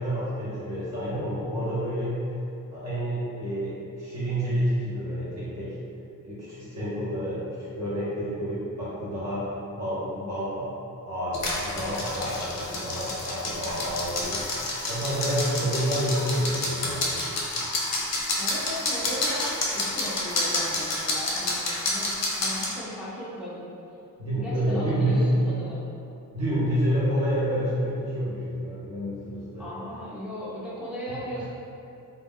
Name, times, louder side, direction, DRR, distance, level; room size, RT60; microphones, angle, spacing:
voice 1, 0.0-2.2 2.7-5.8 6.2-10.7 11.1-14.5 14.9-17.4 24.2-25.3 26.3-29.7 31.1-31.4, equal, 50° right, -11 dB, 0.7 m, -29 dB
sound 1, 11.3-22.7, left 2 dB, 50° left, 0.5 m, -29 dB
voice 2, 18.4-23.7 24.4-25.8 29.6-31.5, equal, 5° right, -9 dB, 0.3 m, -36 dB
2.2 x 2.1 x 3.4 m, 2.7 s
wide cardioid pair, 160°, 35 cm